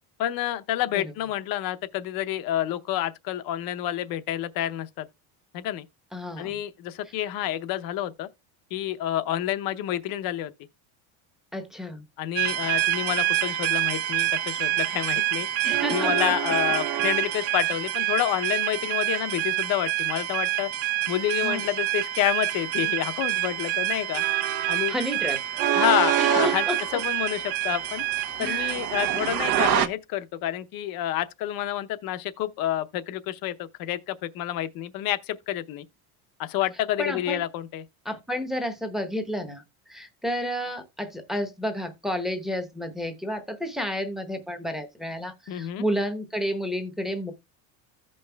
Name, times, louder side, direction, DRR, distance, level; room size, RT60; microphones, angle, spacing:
voice 1, 0.2-5.1 5.5-5.8 6.4-8.3 8.7-10.5 12.2-15.5 15.9-20.7 21.1-24.2 24.7-24.9 25.7-26.7 26.9-28.0 28.4-35.8 36.4-37.8 45.5-45.8, left 12 dB, 50° left, 0.7 m, -28 dB
voice 2, 6.1-6.5 11.5-12.0 15.6-16.2 21.4-21.6 24.9-25.4 26.2-27.0 28.4-28.7 37.0-37.4 38.0-39.6 39.9-47.3, equal, ahead, 0.9 m, -31 dB
sound 1, 12.4-29.9, right 13 dB, 60° right, 1.0 m, -26 dB
15.0 x 5.4 x 2.2 m
cardioid pair, 145°, 44 cm